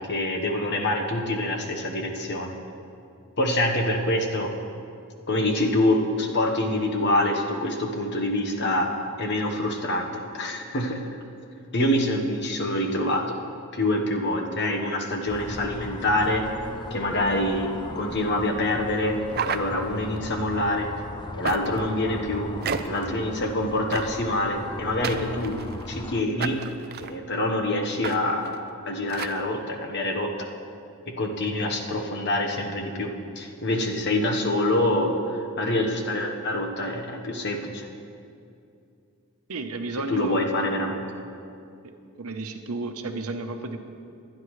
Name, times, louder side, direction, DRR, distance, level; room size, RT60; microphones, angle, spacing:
voice 1, 0.0-2.5 3.4-4.5 5.3-8.9 9.2-11.1 11.7-13.4 13.7-16.5 16.9-17.7 17.9-20.9 21.4-22.5 22.8-26.7 27.0-28.6 28.8-30.3 31.1-37.9 40.1-41.0, left 1 dB, 50° left, 2 dB, 1.2 m, -26 dB
sound 1, 15.3-26.2, left 2 dB, 20° left, 0.4 m, -38 dB
sound 2, 19.3-20.2 21.4-21.9 22.6-23.1 23.9-24.3 25.0-25.9 26.4-27.1 28.0-28.2 28.4-28.6 29.1-29.4, right 6 dB, 45° right, 0.5 m, -32 dB
voice 2, 39.5-40.5 41.8-43.8, right 3 dB, 80° right, 6 dB, 0.9 m, -33 dB
23.5 x 9.5 x 3.2 m, 2.5 s
head